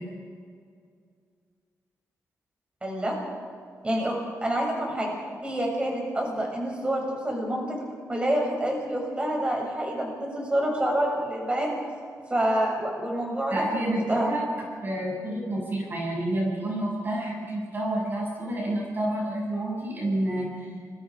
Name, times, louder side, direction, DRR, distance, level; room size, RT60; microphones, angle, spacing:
voice 1, 2.8-3.1 3.8-4.1 4.4-5.1 5.4-7.8 8.1-11.7 12.3-14.3, right 1 dB, 20° right, 0 dB, 6.8 m, -27 dB
voice 2, 13.5-14.4 14.8-20.7, right 1 dB, 35° right, -2 dB, 7.1 m, -29 dB
29.5 x 22.5 x 4.9 m, 2.2 s
wide cardioid pair, 135°, 6 cm